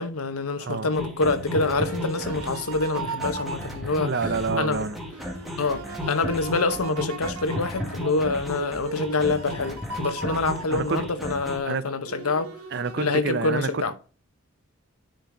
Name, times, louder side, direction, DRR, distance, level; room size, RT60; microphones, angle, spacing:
voice 1, 0.0-4.1 4.6-4.9 5.6-12.5 13.0-13.9, left 3 dB, 85° left, 1.0 m, -26 dB
voice 2, 0.6-0.9 4.0-5.0 10.7-11.0 11.6-11.9 12.7-13.9, right 4 dB, 50° right, 0.6 m, -28 dB
sound 1, 1.0-11.6, left 1 dB, ahead, 1.8 m, -34 dB
sound 2, 1.1-4.6 5.1-11.3 12.1-13.2, right 5 dB, 85° right, 1.2 m, -38 dB
10.0 x 4.8 x 3.9 m
head